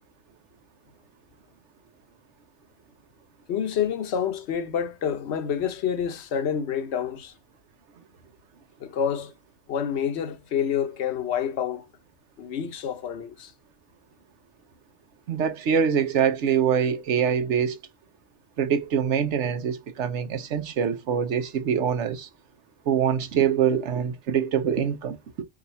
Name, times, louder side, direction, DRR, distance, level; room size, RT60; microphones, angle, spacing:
voice 1, 3.5-7.3 8.8-9.3 9.7-11.9 12.4-13.5, left 8 dB, 65° left, 1.0 m, -28 dB
voice 2, 15.3-17.8 18.6-22.3 22.9-25.4, right 8 dB, 75° right, 1.1 m, -24 dB
5.1 x 2.3 x 4.1 m
omnidirectional pair, 1.2 m